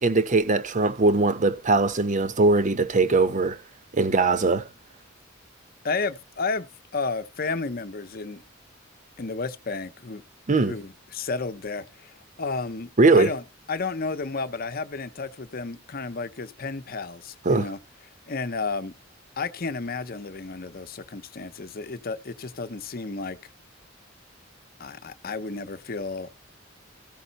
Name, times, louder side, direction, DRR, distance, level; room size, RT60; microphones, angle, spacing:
voice 1, 0.0-3.6 3.9-4.7 10.5-10.7 13.0-13.3 17.4-17.7, right 3 dB, 40° right, 0.7 m, -20 dB
voice 2, 5.8-6.7 6.9-8.4 9.2-10.2 10.6-17.8 18.3-18.9 19.4-23.4 24.8-26.3, left 4 dB, 50° left, 0.8 m, -32 dB
14.5 x 5.4 x 4.1 m
head